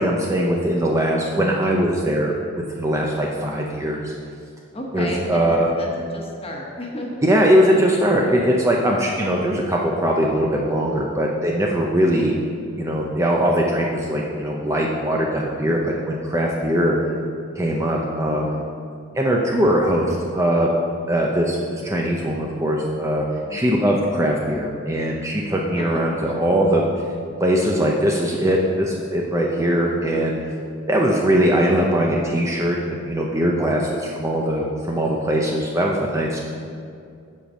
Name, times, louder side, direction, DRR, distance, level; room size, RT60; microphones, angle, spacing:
voice 1, 0.0-2.3 2.7-4.1 4.9-5.7 7.2-12.3 12.8-17.0 17.6-18.6 19.2-20.8 21.1-23.2 23.5-26.8 27.4-30.4 30.9-36.4, equal, 15° right, -1 dB, 0.5 m, -21 dB
voice 2, 4.7-7.3 23.4-23.8 25.8-26.5, left 1 dB, 25° left, -1 dB, 1.2 m, -32 dB
7.7 x 5.0 x 6.3 m, 2.4 s
head